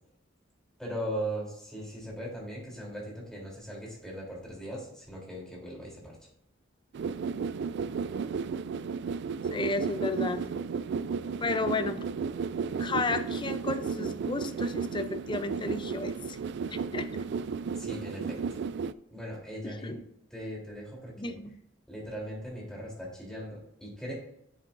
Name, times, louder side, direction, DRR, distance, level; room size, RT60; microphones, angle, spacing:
voice 1, 0.8-6.2 17.7-18.4 19.1-20.0 20.3-21.3 21.9-24.1, equal, 5° left, -4 dB, 3.3 m, -39 dB
sound 1, 6.9-18.9, right 5 dB, 60° right, 0.3 m, -33 dB
voice 2, 9.5-10.4 11.4-12.0 12.8-16.4 16.7-17.1 19.6-20.0 21.2-21.5, left 3 dB, 25° left, 9 dB, 0.5 m, -33 dB
10.5 x 7.1 x 2.6 m, 0.75 s
head